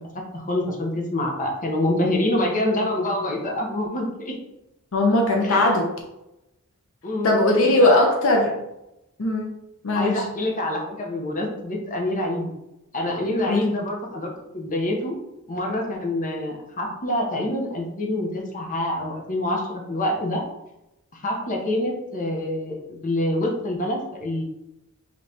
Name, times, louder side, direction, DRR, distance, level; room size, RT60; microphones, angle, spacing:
voice 1, 0.3-4.4 5.4-5.7 7.0-7.4 7.8-8.0 9.9-12.5 12.9-15.2 15.5-20.4 21.1-24.4, left 1 dB, 40° left, 0 dB, 0.9 m, -26 dB
voice 2, 4.9-5.9 7.2-8.5 9.2-9.6 9.8-10.2 13.5-13.6, left 2 dB, 65° left, 1 dB, 0.7 m, -19 dB
5.2 x 3.2 x 2.8 m, 0.90 s
head